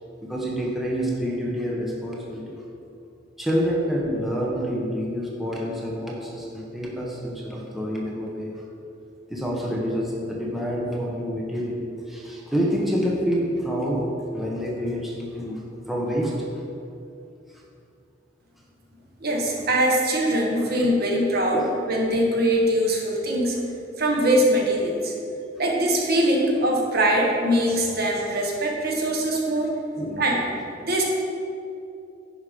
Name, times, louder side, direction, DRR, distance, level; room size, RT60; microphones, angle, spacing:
voice 1, 0.2-2.6 3.4-8.6 9.3-14.1 14.3-16.5 20.6-20.9 21.5-21.8 30.0-30.2, equal, ahead, -4 dB, 1.0 m, -28 dB
voice 2, 19.2-23.6 24.0-25.1 25.6-29.7 30.2-30.4 30.8-31.0, right 1 dB, 55° right, 0 dB, 1.4 m, -22 dB
10.0 x 5.4 x 5.1 m, 2.6 s
head